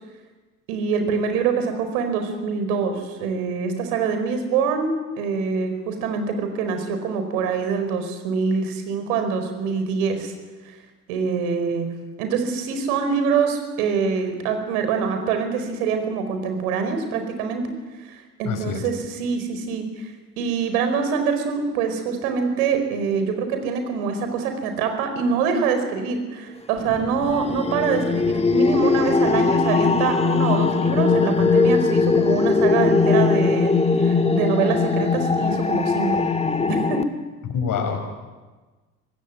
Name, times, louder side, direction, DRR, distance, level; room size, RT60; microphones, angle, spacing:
voice 1, 0.7-10.3 11.1-11.9 12.2-17.7 18.0-20.1 20.4-33.7 34.0-36.3 36.7-37.0, right 5 dB, 65° right, 7 dB, 4.9 m, -24 dB
voice 2, 18.4-18.8 37.5-38.0, left 6 dB, 40° left, 4 dB, 6.6 m, -25 dB
sound 1, 26.8-37.0, left 4 dB, 15° left, 1.6 m, -20 dB
25.0 x 19.5 x 9.5 m, 1.3 s
figure-of-eight pair, 60°, 47 cm